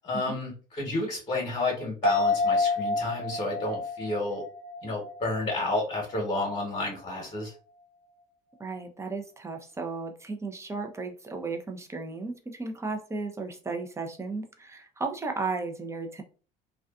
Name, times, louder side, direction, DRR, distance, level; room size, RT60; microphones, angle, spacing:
voice 1, 0.0-4.4 4.8-7.5, left 2 dB, 30° left, -1 dB, 1.1 m, -31 dB
sound 1, 2.0-5.7 6.1-6.2, left 3 dB, 80° right, 1.0 m, -28 dB
voice 2, 8.6-16.2, right 3 dB, 15° right, 4 dB, 0.6 m, -34 dB
2.4 x 2.3 x 2.4 m, 0.37 s
hypercardioid pair, 75°, 21 cm